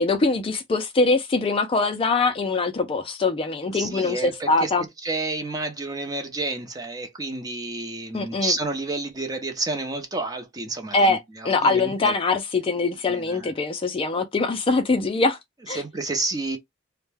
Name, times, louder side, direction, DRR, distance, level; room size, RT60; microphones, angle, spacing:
voice 1, 0.0-4.8 8.1-8.5 10.9-11.2 11.4-15.4 15.7-15.8, left 3 dB, 30° left, 0.3 m, -23 dB
voice 2, 3.7-4.7 5.0-12.1 13.1-13.5 15.7-16.6, right 2 dB, 20° right, 0.6 m, -30 dB
2.2 x 2.1 x 3.2 m
head